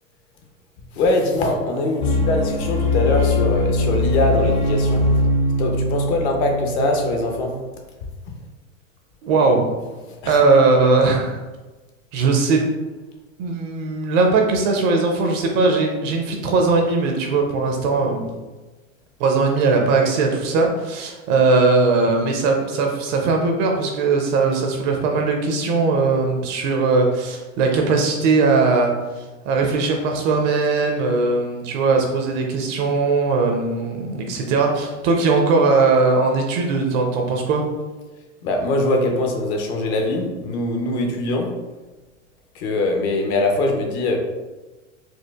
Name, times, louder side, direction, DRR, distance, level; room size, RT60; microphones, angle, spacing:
voice 1, 0.9-5.1 5.6-7.5 10.2-10.4 38.4-41.5 42.5-44.2, left 2 dB, 50° left, 3 dB, 0.8 m, -22 dB
sound 1, 2.0-7.3, left 2 dB, 15° left, 0.5 m, -21 dB
voice 2, 9.2-9.7 10.3-11.4 12.1-12.6 13.4-18.3 19.2-37.6, right 3 dB, 35° right, 2 dB, 0.5 m, -19 dB
4.4 x 2.4 x 2.3 m, 1.2 s
hypercardioid pair, 120°, 41 cm